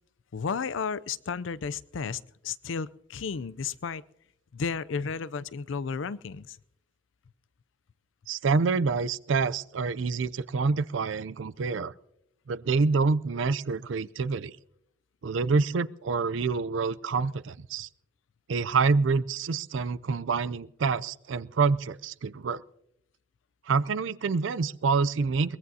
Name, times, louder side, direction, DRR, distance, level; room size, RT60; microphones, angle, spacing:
voice 1, 0.3-4.0 4.5-6.6, left 5 dB, 85° left, 0.5 m, -33 dB
voice 2, 8.3-11.9 12.5-14.5 15.2-17.9 18.5-22.6 23.7-25.6, right 4 dB, 80° right, 0.5 m, -27 dB
23.0 x 20.5 x 2.7 m
head